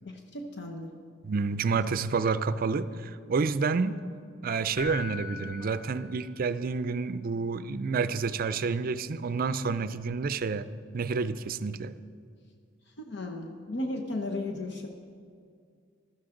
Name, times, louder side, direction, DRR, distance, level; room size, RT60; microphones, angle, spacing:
voice 1, 0.0-0.9 5.6-5.7 13.0-14.9, left 2 dB, 65° left, 2 dB, 1.0 m, -35 dB
voice 2, 1.2-4.0 4.4-10.7 10.9-11.9, right 4 dB, 50° right, 14 dB, 0.4 m, -29 dB
Keyboard (musical), 4.7-6.7 10.0-10.1, left 5 dB, 15° left, 1.0 m, -42 dB
15.5 x 13.0 x 3.8 m, 2.2 s
head